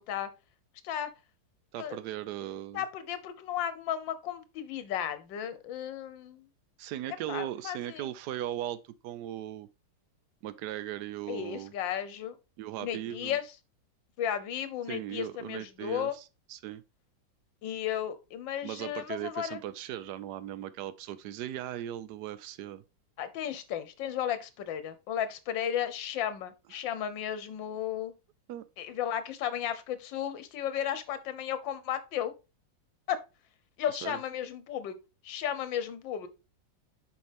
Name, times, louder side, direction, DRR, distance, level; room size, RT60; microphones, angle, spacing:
voice 1, 1.7-2.8 6.8-9.7 10.4-11.7 12.6-13.4 14.9-16.8 18.6-22.8 28.5-28.6 34.0-34.2, right 12 dB, 75° right, 1.0 m, -38 dB
voice 2, 2.7-6.4 7.3-8.1 11.3-12.3 12.8-13.4 14.2-16.1 17.6-19.6 23.2-28.1 28.8-32.3 33.1-33.2 33.8-35.0 35.2-36.3, left 10 dB, 80° left, 1.5 m, -34 dB
6.8 x 5.1 x 3.4 m
omnidirectional pair, 2.0 m